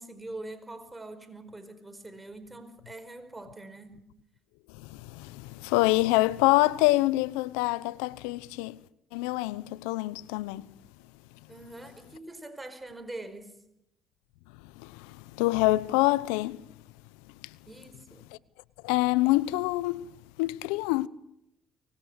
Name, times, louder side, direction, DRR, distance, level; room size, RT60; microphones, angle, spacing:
voice 1, 0.0-4.1 11.5-13.6 17.6-18.3, right 2 dB, 15° right, 4.9 m, -43 dB
voice 2, 4.7-8.8 9.1-10.7 14.6-16.7 17.4-17.6 18.3-18.4 18.8-20.1 20.4-21.1, left 19 dB, 85° left, 0.9 m, -26 dB
24.5 x 20.5 x 8.1 m
hypercardioid pair, 60°, 0 cm